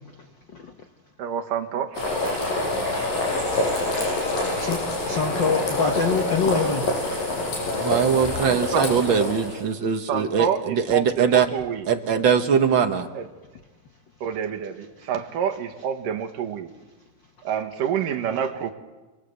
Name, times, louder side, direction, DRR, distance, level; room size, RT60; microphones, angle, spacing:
voice 1, 1.2-2.2 8.5-9.1 10.1-11.9 13.1-13.3 14.2-16.7 17.4-18.7, right 8 dB, 75° right, 5 dB, 3.1 m, -28 dB
sound 1, 1.9-9.6, left 2 dB, 85° left, 9.6 m, -26 dB
voice 2, 4.4-6.9, left 5 dB, 65° left, 6 dB, 1.1 m, -25 dB
voice 3, 7.7-11.5 11.9-13.1, right 7 dB, 55° right, 7 dB, 1.4 m, -21 dB
30.0 x 20.5 x 8.2 m, 1.2 s
omnidirectional pair, 3.9 m